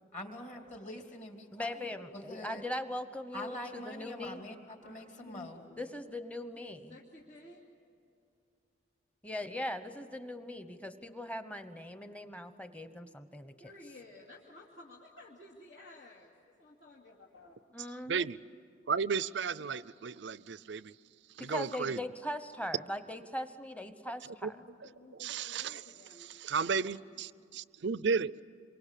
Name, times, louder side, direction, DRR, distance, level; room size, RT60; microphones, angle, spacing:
voice 1, 0.1-1.9 2.3-2.6 3.3-5.6, left 1 dB, 40° left, 3 dB, 2.9 m, -44 dB
voice 2, 1.5-4.4 5.8-6.9 9.2-13.5 17.7-18.3 21.4-24.6, left 1 dB, 5° left, 9 dB, 1.0 m, -40 dB
voice 3, 4.8-5.8 6.9-7.6 13.6-17.6 19.6-19.8 24.5-26.3 26.8-27.2, left 2 dB, 70° left, -4 dB, 2.5 m, -54 dB
voice 4, 18.1-18.4 18.9-20.9 21.4-22.0 24.4-24.5 25.2-25.8 26.2-28.3, right 5 dB, 65° right, 18 dB, 0.5 m, -33 dB
27.5 x 23.5 x 8.4 m, 2.6 s
head